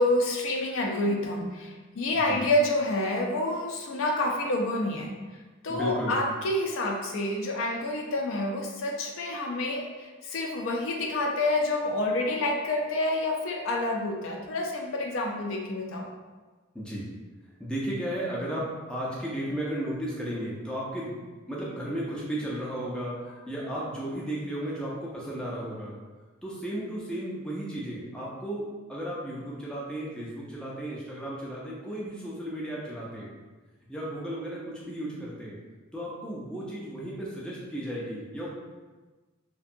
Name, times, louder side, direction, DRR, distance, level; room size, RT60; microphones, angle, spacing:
voice 1, 0.0-5.1 5.6-16.1, left 1 dB, 75° left, 1 dB, 0.4 m, -28 dB
voice 2, 5.7-6.2 16.7-17.1 17.6-21.2 21.5-23.2 23.5-25.9 26.4-33.3 33.9-35.6 35.9-38.5, right 1 dB, 5° left, -6 dB, 0.3 m, -34 dB
2.6 x 2.1 x 2.5 m, 1.3 s
head